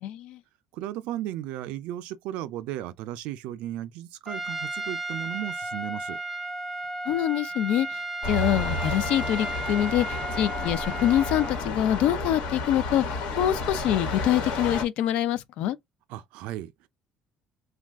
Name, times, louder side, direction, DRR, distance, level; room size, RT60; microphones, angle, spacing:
voice 1, 0.0-0.4 7.1-8.0 8.3-15.8, left 11 dB, 70° left, 0.4 m, -25 dB
voice 2, 0.7-6.2 16.1-16.9, right 13 dB, 85° right, 0.4 m, -35 dB
Trumpet, 4.3-11.6, right 2 dB, ahead, 0.5 m, -34 dB
sound 1, 8.2-14.9, left 2 dB, 85° left, 1.3 m, -31 dB
2.3 x 2.3 x 3.4 m
cardioid pair, 165°, 2 cm